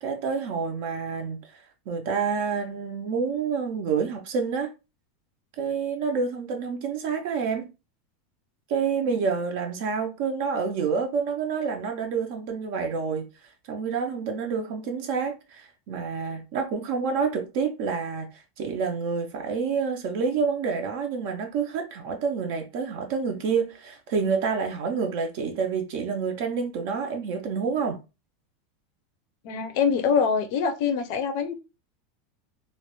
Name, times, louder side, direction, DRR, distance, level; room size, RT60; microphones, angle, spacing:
voice 1, 0.0-1.4 1.9-4.7 5.6-7.7 8.7-13.3 13.7-28.0, right 5 dB, 55° right, 0.4 m, -28 dB
voice 2, 29.4-31.5, left 6 dB, 50° left, 0.4 m, -24 dB
2.2 x 2.0 x 2.9 m
supercardioid pair, 165°, 0 cm